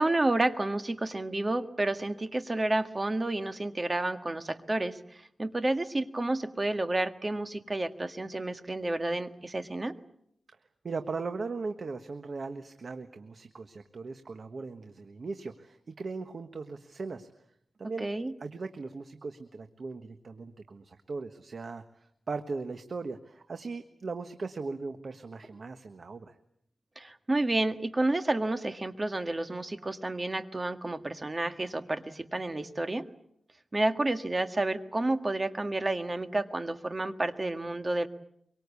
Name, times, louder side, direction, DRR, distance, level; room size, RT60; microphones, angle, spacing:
voice 1, 0.0-10.0 18.0-18.3 27.0-33.1 33.7-38.1, right 2 dB, 30° right, 8 dB, 1.8 m, -30 dB
voice 2, 10.8-17.4 17.8-18.1 18.4-26.4, right 4 dB, 65° right, 8 dB, 1.4 m, -38 dB
24.5 x 24.0 x 8.4 m, 0.74 s
wide cardioid pair, 80°, 0 cm